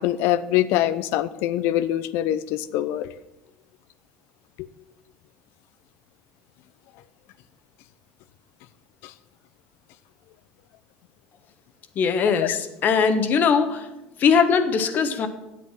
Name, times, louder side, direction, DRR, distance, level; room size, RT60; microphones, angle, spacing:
voice 1, 0.0-3.1 12.4-12.6, left 13 dB, 70° left, 15 dB, 0.7 m, -24 dB
voice 2, 11.9-13.9 14.2-15.3, left 6 dB, 45° left, 9 dB, 1.3 m, -20 dB
9.4 x 8.1 x 7.4 m, 0.97 s
supercardioid pair, 110°, 4 cm